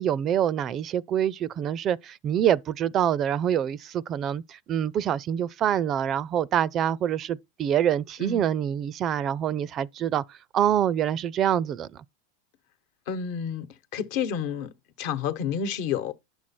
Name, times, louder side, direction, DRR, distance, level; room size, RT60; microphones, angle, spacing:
voice 1, 0.0-10.2 10.5-12.0, right 10 dB, 35° right, 0.4 m, -26 dB
voice 2, 13.1-14.7 15.0-16.1, left 7 dB, 60° left, 1.1 m, -30 dB
10.5 x 6.2 x 4.3 m
supercardioid pair, 125°, 0 cm